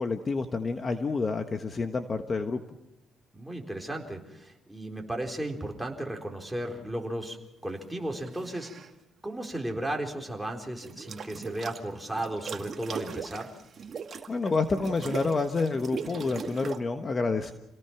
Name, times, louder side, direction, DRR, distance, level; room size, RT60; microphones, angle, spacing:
voice 1, 0.0-2.6 14.3-17.5, left 4 dB, 30° left, 6 dB, 1.3 m, -28 dB
voice 2, 3.3-7.4 7.6-8.7 9.2-13.5, right 1 dB, 5° right, 1 dB, 4.1 m, -35 dB
sound 1, 8.2-8.9 10.8-11.8 12.2-16.8, right 6 dB, 45° right, 2.1 m, -39 dB
28.5 x 18.0 x 5.9 m, 0.92 s
cardioid pair, 110°, 0 cm